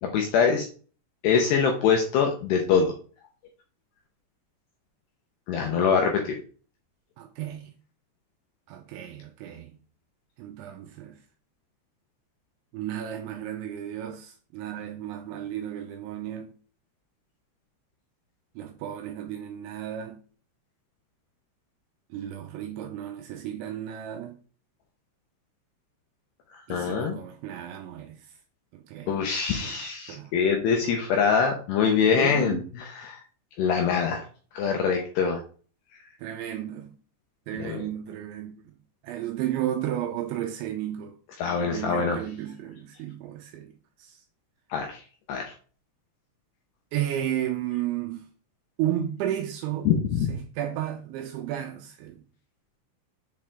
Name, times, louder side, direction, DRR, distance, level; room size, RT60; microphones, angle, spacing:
voice 1, 0.0-0.7 1.2-2.9 5.5-6.3 26.7-27.2 29.1-33.2 33.6-34.2 34.5-35.4 37.6-37.8 41.4-42.2 44.7-45.0 45.3-45.5 49.9-50.3, left 6 dB, 75° left, 2.5 m, -24 dB
voice 2, 7.2-7.7 8.7-9.7 10.4-11.2 12.7-16.5 18.6-20.2 22.1-24.4 26.7-28.3 28.7-29.2 29.6-29.8 30.1-30.4 32.1-32.6 36.2-36.9 37.5-38.7 39.0-41.2 41.4-43.7 44.0-44.2 46.9-48.3 48.8-49.9 50.3-52.2, right 11 dB, 80° right, 2.8 m, -33 dB
7.4 x 4.8 x 3.6 m
omnidirectional pair, 5.7 m